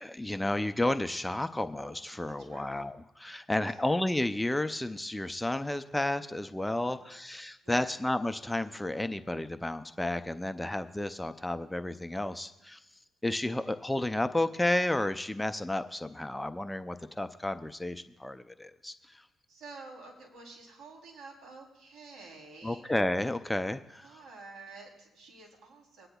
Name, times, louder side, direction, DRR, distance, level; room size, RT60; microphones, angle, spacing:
voice 1, 0.0-12.8 13.2-19.2 22.6-24.1, left 1 dB, 10° left, 10 dB, 0.4 m, -32 dB
voice 2, 2.4-2.8 3.6-3.9 6.8-7.2 7.6-8.0 19.5-22.9 24.0-26.1, right 3 dB, 65° right, 0 dB, 3.0 m, -50 dB
25.5 x 9.8 x 2.3 m, 0.93 s
cardioid pair, 90°, 0 cm